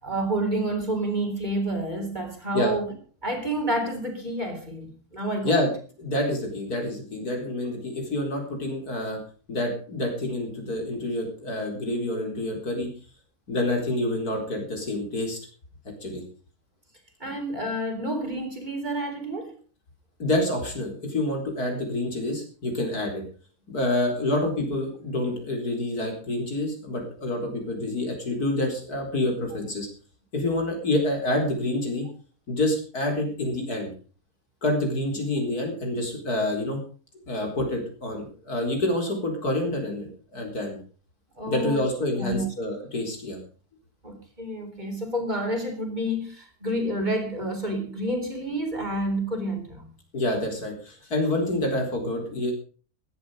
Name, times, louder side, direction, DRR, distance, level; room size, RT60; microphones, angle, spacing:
voice 1, 0.0-2.9 3.2-5.6 17.2-19.5 41.4-41.8 42.2-42.5 44.0-49.9, right 1 dB, 30° right, 4.1 m, -29 dB
voice 2, 6.0-9.2 9.5-12.9 13.5-15.4 16.0-16.2 20.2-23.2 23.7-29.9 30.3-32.1 32.5-33.9 34.6-36.8 37.3-40.8 41.5-43.4 50.1-52.5, left 1 dB, 90° left, 4.8 m, -27 dB
15.0 x 12.0 x 5.1 m
omnidirectional pair, 1.6 m